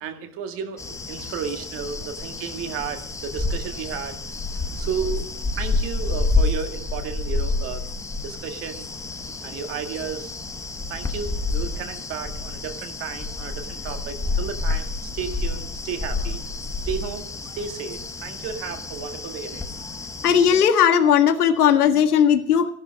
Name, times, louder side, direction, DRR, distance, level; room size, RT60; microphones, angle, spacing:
voice 1, 0.0-4.2 4.8-7.9 8.2-8.9 9.4-10.3 10.9-16.4 16.8-19.7, right 7 dB, 30° right, 7 dB, 1.7 m, -33 dB
sound 1, 0.8-20.6, left 3 dB, 5° left, 0.8 m, -29 dB
voice 2, 20.2-22.7, left 8 dB, 85° left, 7 dB, 1.7 m, -17 dB
15.0 x 12.0 x 5.2 m, 0.66 s
hypercardioid pair, 135°, 44 cm